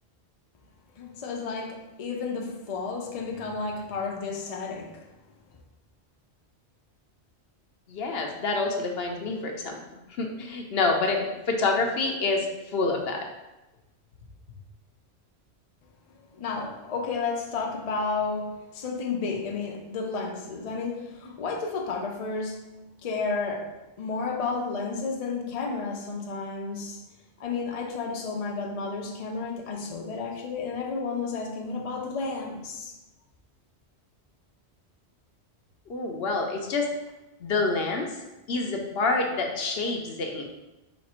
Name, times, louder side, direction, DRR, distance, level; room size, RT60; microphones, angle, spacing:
voice 1, 0.9-5.1 16.3-22.7 23.0-27.0 27.4-33.0, left 4 dB, 45° left, 0.5 m, -32 dB
voice 2, 7.9-9.8 10.2-13.3 35.9-36.9 37.4-38.1 38.5-40.4, left 3 dB, 70° left, 0.8 m, -27 dB
4.2 x 2.4 x 4.2 m
omnidirectional pair, 1.1 m